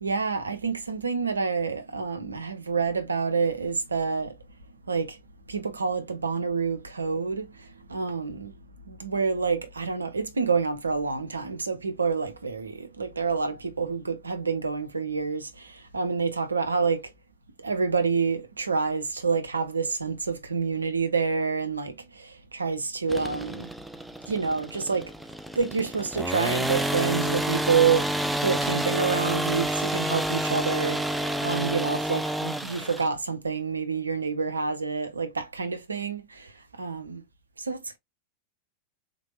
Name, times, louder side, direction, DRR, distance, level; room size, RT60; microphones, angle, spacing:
voice 1, 0.0-4.3 4.9-5.2 5.5-7.4 7.9-8.5 8.9-15.7 15.9-17.0 17.6-23.7 24.3-25.1 25.6-28.1 28.4-31.0 31.4-36.5 36.8-37.2 37.7-38.0, right 5 dB, 75° right, 0.7 m, -28 dB
sound 1, 23.1-33.1, right 1 dB, 5° right, 0.4 m, -29 dB
3.7 x 3.4 x 2.4 m
figure-of-eight pair, 90°, 0 cm